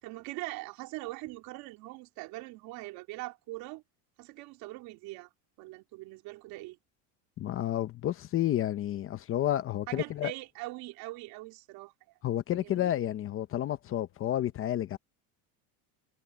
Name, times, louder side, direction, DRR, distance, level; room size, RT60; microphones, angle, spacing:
voice 1, 0.0-3.8 4.2-5.3 5.6-6.8 9.9-11.9 12.5-12.9, right 20 dB, 60° right, 3.6 m, -42 dB
voice 2, 7.4-10.3 12.2-15.0, left 12 dB, 35° left, 0.8 m, -30 dB
cardioid pair, 155°, 40 cm